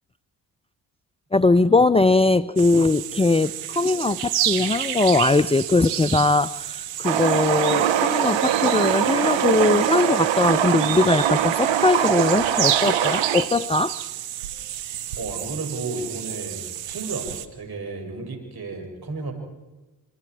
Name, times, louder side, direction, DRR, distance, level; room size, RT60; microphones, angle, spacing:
voice 1, 1.3-14.0, left 3 dB, 10° left, 14 dB, 0.7 m, -20 dB
sound 1, 2.6-17.5, right 11 dB, 85° right, 1.3 m, -30 dB
sound 2, 7.0-13.4, right 10 dB, 70° right, 1.5 m, -22 dB
voice 2, 15.2-19.3, right 3 dB, 50° right, 2 dB, 7.8 m, -33 dB
27.0 x 26.5 x 5.0 m, 1.1 s
hypercardioid pair, 45°, 47 cm